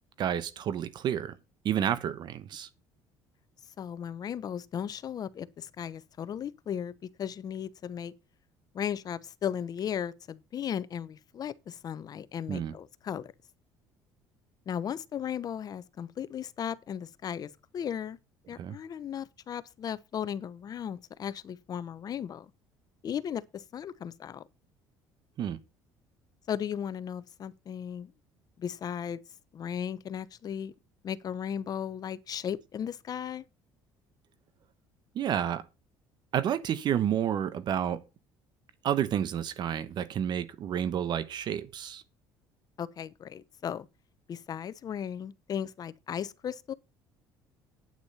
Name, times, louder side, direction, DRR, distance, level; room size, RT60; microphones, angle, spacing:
voice 1, 0.2-1.3 1.6-2.7 12.5-12.7 18.6-18.8 25.4-25.6 35.1-35.6 36.3-38.0 38.8-42.0, right 9 dB, 55° right, 1.1 m, -30 dB
voice 2, 3.8-8.1 8.7-13.3 14.7-18.2 18.5-22.5 23.0-24.4 26.5-28.1 28.6-29.2 29.5-30.7 31.0-33.4 42.8-43.9 44.3-46.7, left 8 dB, 45° left, 0.9 m, -36 dB
9.0 x 8.6 x 5.6 m
supercardioid pair, 95°, 9 cm